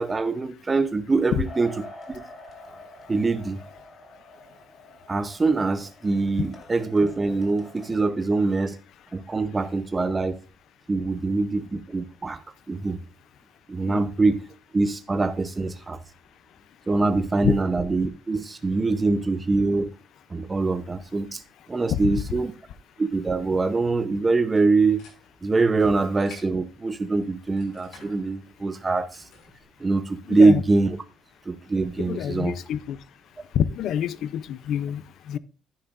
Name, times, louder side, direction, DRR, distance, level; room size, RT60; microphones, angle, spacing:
voice 1, 0.0-1.8 2.1-2.2 3.1-3.6 5.1-8.8 9.1-10.4 10.9-12.4 12.7-13.0 13.7-14.5 14.7-16.0 16.9-19.9 20.3-21.4 21.7-22.5 23.0-25.0 25.4-29.2 29.8-31.0 31.5-32.6, right 3 dB, 20° right, 0.7 m, -23 dB
sound 1, 1.4-8.1, left 1 dB, 30° left, 2.4 m, -46 dB
sound 2, 24.4-29.6, left 3 dB, 80° left, 5.8 m, -52 dB
voice 2, 30.3-30.6 32.0-33.0 33.5-35.4, left 10 dB, 65° left, 0.5 m, -27 dB
10.5 x 10.0 x 2.5 m
cardioid pair, 140°, 0 cm